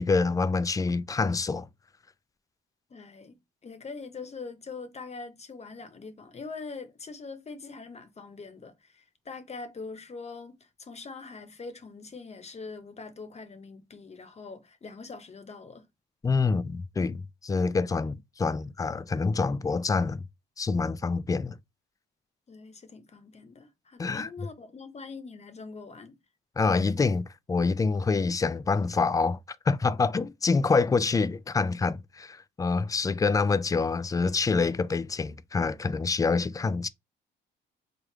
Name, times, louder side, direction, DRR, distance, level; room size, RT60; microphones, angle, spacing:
voice 1, 0.0-1.7 16.2-20.2 20.6-21.6 24.0-24.3 26.6-29.4 29.7-36.9, left 4 dB, 15° left, 0.3 m, -26 dB
voice 2, 2.9-3.4 3.6-15.8 22.5-26.2, left 4 dB, 35° left, 0.8 m, -43 dB
3.3 x 2.4 x 4.4 m
cardioid pair, 90°, 20 cm